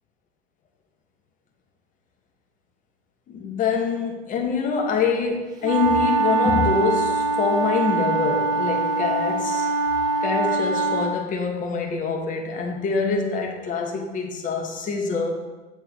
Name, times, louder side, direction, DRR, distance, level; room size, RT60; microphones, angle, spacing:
voice 1, 3.3-9.7 10.2-15.3, left 5 dB, 20° left, 1 dB, 1.0 m, -25 dB
sound 1, 5.6-11.1, right 4 dB, 10° right, 0.5 m, -23 dB
7.8 x 3.4 x 5.1 m, 1.2 s
figure-of-eight pair, 95°, 36 cm